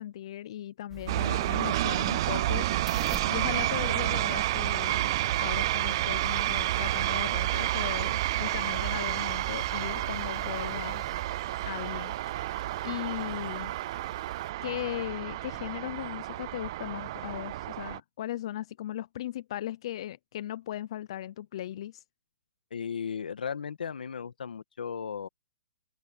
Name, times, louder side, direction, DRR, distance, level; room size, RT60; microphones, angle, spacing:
voice 1, 0.0-2.7 3.3-11.0 11.6-13.7 14.6-22.0, left 12 dB, 40° left, 0.5 m, -37 dB
sound 1, 0.9-11.2, right 3 dB, 5° right, 1.5 m, -47 dB
sound 2, 1.1-18.0, right 15 dB, 30° right, 0.4 m, -30 dB
sound 3, 6.2-14.5, right 8 dB, 65° right, 2.5 m, -50 dB
voice 2, 22.7-25.3, left 7 dB, 85° left, 1.9 m, -35 dB
hypercardioid pair, 170°, 5 cm